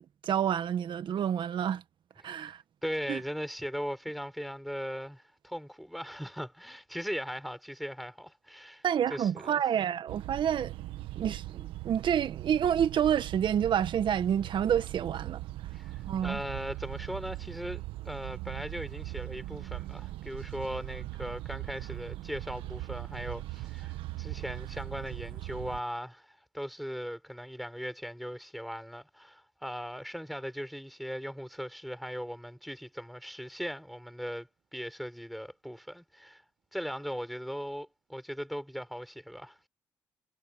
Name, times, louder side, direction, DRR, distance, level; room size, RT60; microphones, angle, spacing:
voice 1, 0.0-1.8 2.2-2.6 3.1-3.2 8.8-10.7 11.2-15.4 16.1-16.4, right 9 dB, 65° right, 1.7 m, -28 dB
voice 2, 2.8-9.6 15.7-36.4 36.7-39.6, equal, ahead, 5.1 m, -39 dB
sound 1, 10.1-25.8, right 17 dB, 80° right, 1.2 m, -40 dB
supercardioid pair, 50°, 9 cm